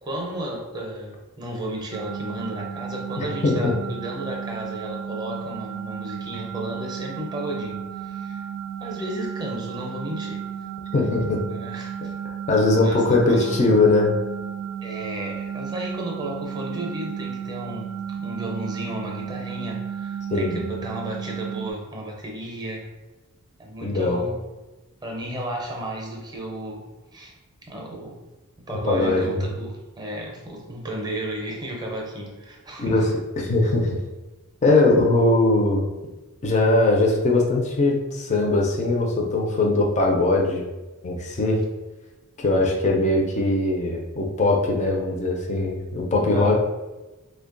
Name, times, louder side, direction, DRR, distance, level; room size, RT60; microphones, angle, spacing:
voice 1, 0.0-8.4 8.8-10.4 11.5-12.1 12.7-13.6 14.8-22.9 23.6-24.4 25.0-26.9 27.1-27.3 27.6-28.2 28.7-33.1 46.3-46.5, right 1 dB, 20° right, 0 dB, 0.6 m, -33 dB
sound 1, 1.9-21.7, right 8 dB, 75° right, 0.3 m, -34 dB
voice 2, 3.2-3.7 10.9-11.4 12.5-14.2 20.3-20.6 23.8-24.2 28.7-29.2 32.8-33.0 33.4-33.9 34.6-35.9 36.4-40.6 41.0-41.6 42.4-46.5, left 2 dB, 30° left, -1 dB, 0.4 m, -20 dB
3.1 x 2.2 x 3.7 m, 1.1 s
head